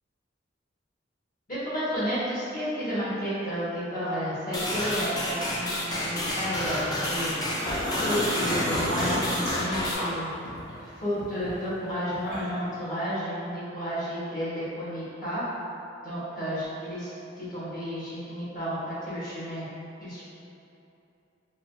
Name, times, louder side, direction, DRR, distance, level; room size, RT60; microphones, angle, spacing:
voice 1, 1.5-7.3 8.1-10.3 10.8-15.4 16.0-19.7 20.0-20.2, equal, 50° left, -11 dB, 1.2 m, -32 dB
sound 1, 4.5-9.9, left 1 dB, 20° left, 0.4 m, -30 dB
sound 2, 7.2-10.8 11.2-12.7, equal, 80° left, 1.0 m, -32 dB
4.6 x 2.3 x 2.4 m, 2.8 s
head